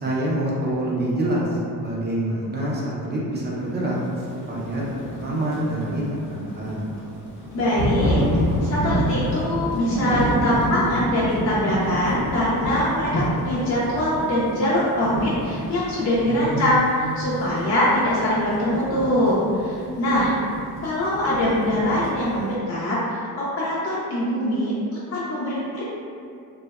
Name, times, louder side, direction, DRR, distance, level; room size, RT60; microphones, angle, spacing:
voice 1, 0.0-4.0 4.3-4.8 5.2-6.9 16.3-17.2, right 1 dB, 25° right, -6 dB, 0.5 m, -26 dB
Thunder / Rain, 4.4-22.5, equal, 80° left, 0.9 m, -29 dB
voice 2, 7.5-16.9 17.2-20.3 20.8-24.7 25.1-25.8, left 1 dB, 45° left, -8 dB, 0.4 m, -23 dB
2.7 x 2.0 x 2.3 m, 2.5 s
cardioid pair, 130°, 39 cm